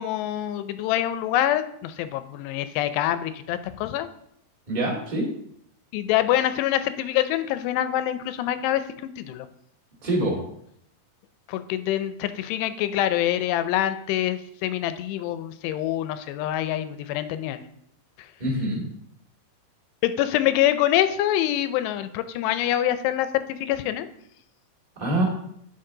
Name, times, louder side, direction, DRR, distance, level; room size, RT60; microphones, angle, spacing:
voice 1, 0.0-4.1 5.9-8.8 9.2-9.5 11.5-17.6 20.0-24.1, left 12 dB, 85° left, 11 dB, 2.7 m, -25 dB
voice 2, 4.7-5.3 10.0-10.4 18.4-18.8 25.0-25.2, right 1 dB, 20° right, -4 dB, 1.2 m, -25 dB
11.0 x 6.0 x 3.8 m, 0.72 s
omnidirectional pair, 4.8 m